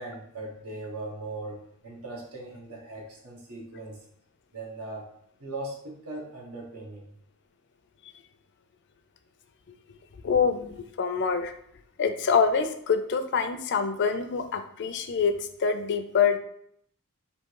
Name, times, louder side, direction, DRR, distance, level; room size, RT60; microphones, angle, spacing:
voice 1, 0.0-4.0 4.5-5.1 5.4-7.1, right 2 dB, 80° right, -1 dB, 1.2 m, -39 dB
voice 2, 10.2-11.5 12.0-16.4, left 6 dB, 55° left, 8 dB, 0.4 m, -25 dB
3.6 x 2.7 x 4.6 m, 0.69 s
head